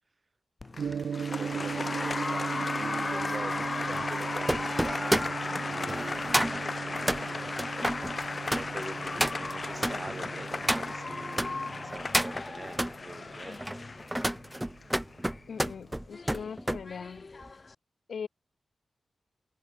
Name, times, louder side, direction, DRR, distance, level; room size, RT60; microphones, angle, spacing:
Applause, 0.6-17.7, left 3 dB, 30° left, 2.7 m, -36 dB
voice 1, 0.6-7.6 8.4-13.7, right 3 dB, 25° right, 3.5 m, -45 dB
Gong, 0.8-14.9, right 7 dB, 80° right, 5.2 m, -39 dB
sound 1, 0.9-11.5 11.9-12.9 13.5-16.8 17.2-17.5, right 1 dB, 5° right, 0.6 m, -32 dB
voice 2, 15.5-17.3 18.1-18.3, left 6 dB, 70° left, 5.1 m, -40 dB
wide cardioid pair, 180°, 0 cm